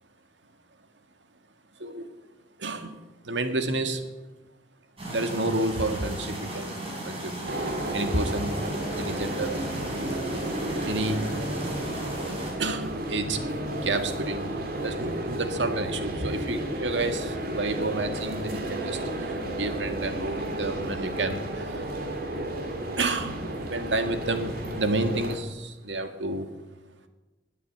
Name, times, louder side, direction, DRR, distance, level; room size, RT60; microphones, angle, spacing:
voice 1, 2.6-4.0 5.1-7.3 7.9-8.6 8.9-9.8 10.9-11.3 12.6-14.5 14.8-21.9 23.0-26.5, right 2 dB, 90° right, 7 dB, 1.9 m, -30 dB
sound 1, 5.0-12.5, right 1 dB, 35° right, 5.4 m, -36 dB
sound 2, 7.5-25.4, right 1 dB, 55° right, 2.6 m, -32 dB
20.5 x 8.3 x 8.2 m, 1.1 s
head